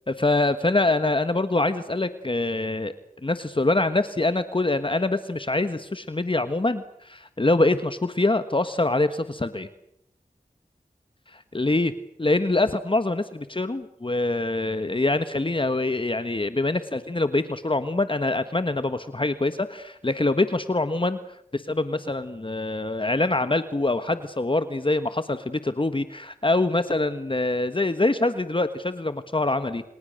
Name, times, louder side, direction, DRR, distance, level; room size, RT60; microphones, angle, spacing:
voice 1, 0.1-2.9 3.2-9.7 11.3-11.9 12.2-21.2 21.5-29.8, left 2 dB, 35° left, 10 dB, 1.4 m, -24 dB
29.0 x 28.5 x 6.6 m, 0.78 s
wide cardioid pair, 50°, 15 cm